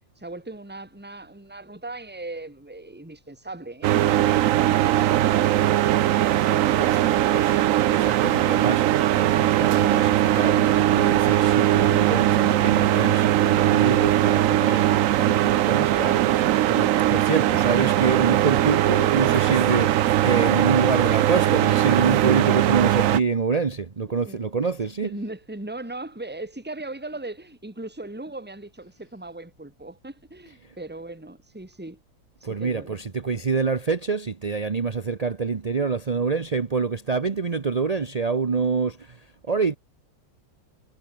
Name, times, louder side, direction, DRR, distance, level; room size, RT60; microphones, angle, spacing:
voice 1, 0.2-5.8 24.2-24.4 25.0-32.0 32.4-33.0, right 2 dB, 5° right, 3.0 m, -38 dB
sound 1, 3.8-23.2, right 13 dB, 80° right, 0.7 m, -20 dB
voice 2, 7.3-25.1 32.4-39.7, right 5 dB, 40° right, 0.5 m, -26 dB
omnidirectional pair, 2.1 m